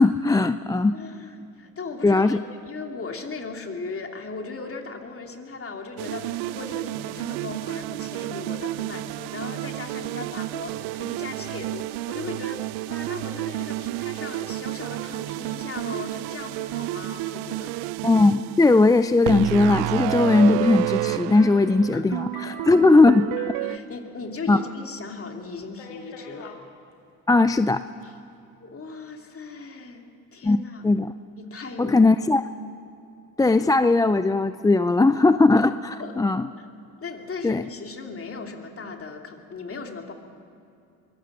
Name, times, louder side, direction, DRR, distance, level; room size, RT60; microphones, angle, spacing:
voice 1, 0.0-1.0 2.0-2.4 18.0-23.3 24.5-24.6 27.3-27.9 30.4-31.1 31.8-32.4 33.4-36.5 37.4-37.6, left 3 dB, 10° left, 12 dB, 0.4 m, -19 dB
voice 2, 0.9-17.7 21.9-23.0 23.6-26.5 28.0-28.2 28.6-30.0 30.3-30.8 31.4-32.1 36.0-36.1 36.6-36.7 37.0-40.1, left 4 dB, 30° left, 3 dB, 2.8 m, -38 dB
sound 1, 6.0-23.8, right 18 dB, 70° right, 0.6 m, -30 dB
sound 2, 21.4-24.6 24.8-24.9 25.7-26.6 27.6-28.0, left 4 dB, 75° left, 2.4 m, -45 dB
23.0 x 17.0 x 7.4 m, 2.6 s
hypercardioid pair, 70°, 42 cm